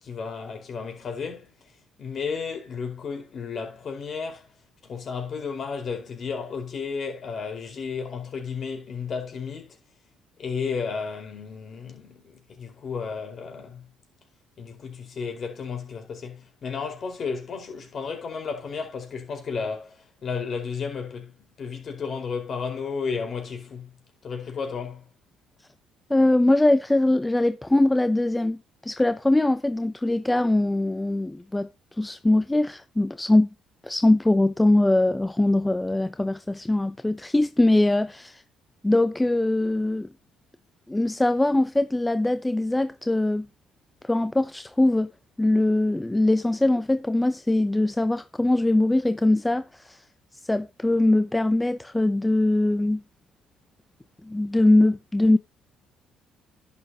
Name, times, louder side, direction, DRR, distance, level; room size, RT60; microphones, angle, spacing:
voice 1, 0.0-1.7 2.0-4.5 4.8-9.8 10.4-13.9 14.6-23.9 24.2-25.0, left 5 dB, 50° left, 4.6 m, -33 dB
voice 2, 26.1-31.7 32.0-33.5 33.8-38.4 38.8-40.1 40.9-43.5 44.0-45.1 45.4-50.0 50.5-53.0 54.2-55.4, left 2 dB, 15° left, 0.7 m, -22 dB
11.0 x 9.0 x 2.9 m
hypercardioid pair, 55°, 0 cm